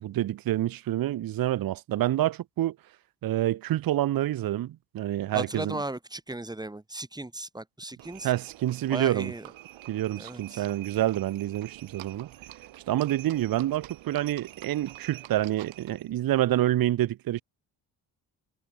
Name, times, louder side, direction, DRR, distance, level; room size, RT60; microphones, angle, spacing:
voice 1, 0.0-2.8 3.2-5.8 8.2-9.3 9.9-12.3 12.9-17.4, right 14 dB, 50° right, 0.7 m, -27 dB
voice 2, 5.3-8.3 8.9-9.5 10.2-10.7, right 2 dB, 10° right, 1.9 m, -36 dB
Livestock farm animals working animals, 8.0-16.1, right 15 dB, 75° right, 6.0 m, -47 dB
hypercardioid pair, 55°, 47 cm